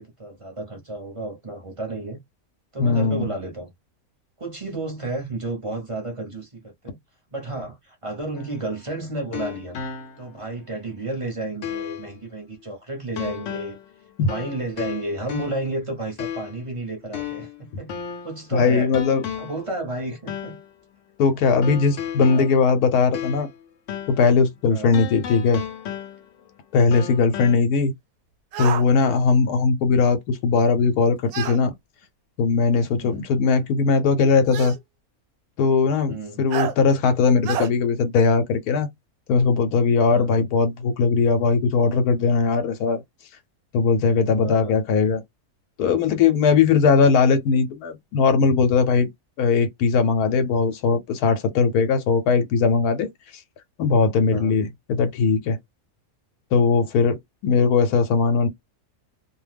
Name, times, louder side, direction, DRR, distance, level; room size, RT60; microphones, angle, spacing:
voice 1, 0.0-2.2 2.7-3.7 4.4-7.0 7.3-9.8 10.2-13.8 14.2-17.9 18.2-18.9 19.4-20.6 22.3-22.5 24.7-24.9 26.9-27.1 33.0-33.2 36.1-36.4 40.1-40.5 44.4-44.8 54.3-54.6, right 2 dB, 25° right, 0.8 m, -32 dB
voice 2, 2.8-3.3 14.2-14.3 18.5-19.2 21.2-23.5 24.1-25.6 26.7-27.9 28.6-31.7 32.4-34.7 35.6-38.9 39.3-43.0 43.7-45.2 45.8-49.1 49.4-53.4 53.8-55.6 56.5-58.5, left 5 dB, 85° left, 1.1 m, -19 dB
sound 1, 8.4-10.4 10.8-10.9 11.6-12.1 13.2-13.9 14.3-15.8 16.2-16.7 17.1-18.4 18.9-19.7 20.3-20.7 21.6-23.6 23.9-24.3 24.9-26.4 26.9-27.6, left 8 dB, 65° left, 0.9 m, -34 dB
sound 2, 28.5-28.9 31.3-31.6 32.9-33.0 34.5-34.8 36.5-36.8 37.4-37.7, right 9 dB, 75° right, 1.0 m, -28 dB
2.6 x 2.1 x 3.3 m
omnidirectional pair, 1.6 m